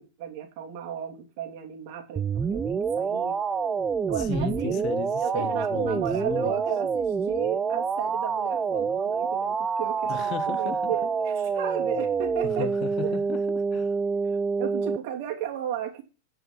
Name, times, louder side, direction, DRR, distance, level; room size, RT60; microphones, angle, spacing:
voice 1, 0.0-3.4 4.1-4.9 5.2-12.7 13.0-13.2 14.2-16.0, right 10 dB, 45° right, 3.0 m, -34 dB
sound 1, 2.2-15.0, right 5 dB, 20° right, 0.5 m, -27 dB
voice 2, 4.2-6.6 10.1-11.1 12.4-14.0, left 12 dB, 35° left, 0.8 m, -36 dB
9.3 x 5.8 x 7.4 m
figure-of-eight pair, 90°, 0 cm